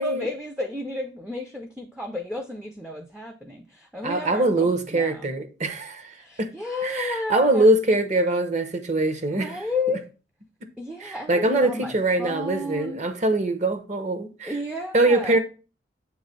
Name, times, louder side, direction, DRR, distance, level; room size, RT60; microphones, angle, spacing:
voice 1, 0.0-5.3 6.2-7.7 9.3-10.1 10.8-13.0 14.4-15.4, left 2 dB, 5° right, 0.5 m, -32 dB
voice 2, 4.0-6.5 6.8-9.5 11.0-14.5 14.9-15.4, right 2 dB, 40° right, 0.8 m, -23 dB
7.5 x 3.1 x 5.2 m
head